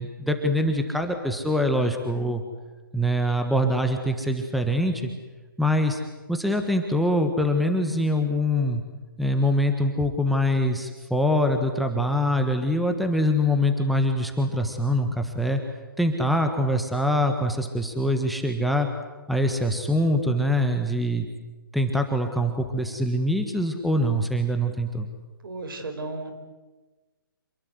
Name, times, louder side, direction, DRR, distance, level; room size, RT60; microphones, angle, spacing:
voice 1, 0.0-2.4 2.9-5.1 5.6-6.0 6.3-8.8 9.2-15.6 16.0-18.9 19.3-21.3 21.7-25.1, equal, ahead, 5 dB, 1.5 m, -24 dB
voice 2, 25.4-26.3, right 2 dB, 70° right, 8 dB, 5.1 m, -34 dB
27.0 x 20.0 x 8.1 m, 1.2 s
hypercardioid pair, 145°, 12 cm